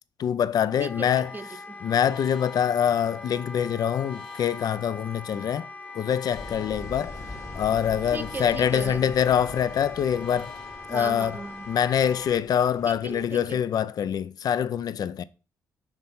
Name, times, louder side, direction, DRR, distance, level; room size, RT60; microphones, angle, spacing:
voice 1, 0.2-1.3 1.8-5.7 6.0-7.2 7.6-10.5 10.9-11.4 11.7-15.2, left 9 dB, 60° left, 0.4 m, -25 dB
Wind instrument woodwind instrument, 0.7-12.4, left 2 dB, 20° left, 0.7 m, -42 dB
voice 2, 0.8-1.8 8.1-9.1 10.9-11.7 12.8-13.6, right 3 dB, 25° right, 0.7 m, -37 dB
sound 1, 1.1-12.3, left 7 dB, 80° left, 1.1 m, -49 dB
sound 2, 6.3-13.6, left 2 dB, 40° left, 1.3 m, -43 dB
5.9 x 3.2 x 5.4 m
cardioid pair, 80°, 7 cm